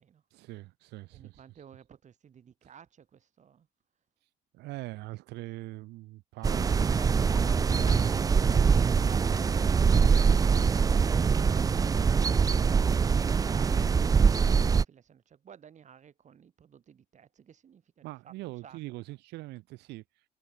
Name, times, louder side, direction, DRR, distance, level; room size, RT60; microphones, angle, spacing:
voice 1, 0.3-1.4 4.5-7.0 18.0-20.0, right 20 dB, 90° right, 6.1 m, -42 dB
voice 2, 1.1-3.7 8.6-18.3 18.6-18.8, right 8 dB, 45° right, 6.0 m, -54 dB
sound 1, 6.4-14.8, right 6 dB, 20° right, 0.4 m, -23 dB
Knock, 7.0-8.1, left 5 dB, 30° left, 3.6 m, -50 dB
cardioid pair, 110°, 17 cm